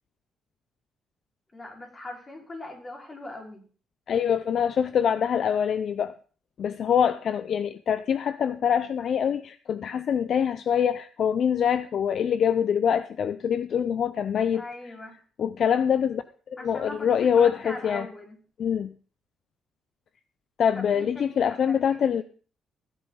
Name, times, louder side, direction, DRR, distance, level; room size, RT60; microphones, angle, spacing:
voice 1, 1.5-3.6 14.5-15.2 16.6-18.4 20.7-22.2, left 2 dB, 30° left, 4.9 m, -41 dB
voice 2, 4.1-6.1 6.6-14.6 15.4-18.1 18.6-18.9 20.6-22.2, left 8 dB, 60° left, 0.6 m, -24 dB
16.0 x 10.5 x 4.0 m
cardioid pair, 90°, 0 cm